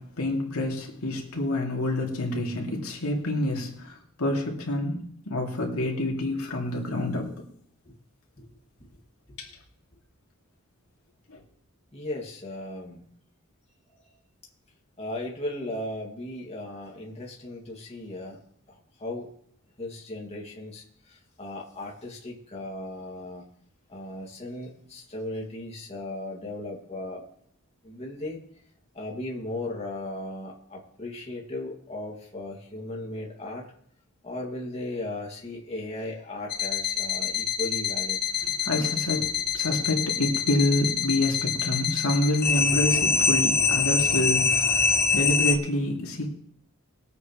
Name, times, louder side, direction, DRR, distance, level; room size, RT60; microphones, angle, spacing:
voice 1, 0.0-7.4 9.4-9.5 11.3-11.4 38.4-46.3, left 1 dB, 90° left, 2.6 m, -28 dB
voice 2, 11.9-13.0 15.0-18.4 18.7-19.3 19.8-23.5 23.9-27.2 27.8-28.4 28.9-33.7 34.2-38.2, left 1 dB, 30° left, 2.2 m, -36 dB
sound 1, 36.5-45.6, left 6 dB, 45° left, 1.1 m, -25 dB
21.5 x 8.3 x 3.1 m
head